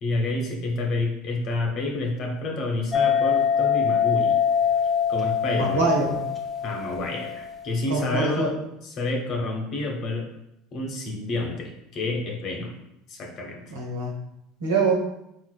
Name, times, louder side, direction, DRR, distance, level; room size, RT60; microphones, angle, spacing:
voice 1, 0.0-4.3 5.1-5.8 6.6-8.5 8.8-10.3 10.7-12.7 13.1-13.7, left 2 dB, 50° left, 2 dB, 1.0 m, -29 dB
sound 1, 2.9-7.7, left 7 dB, 30° left, 0.9 m, -24 dB
voice 2, 5.6-6.3 7.9-8.5 13.7-14.1 14.6-14.9, right 3 dB, 85° right, -4 dB, 1.3 m, -24 dB
4.5 x 3.9 x 2.3 m, 0.83 s
hypercardioid pair, 75°, 0 cm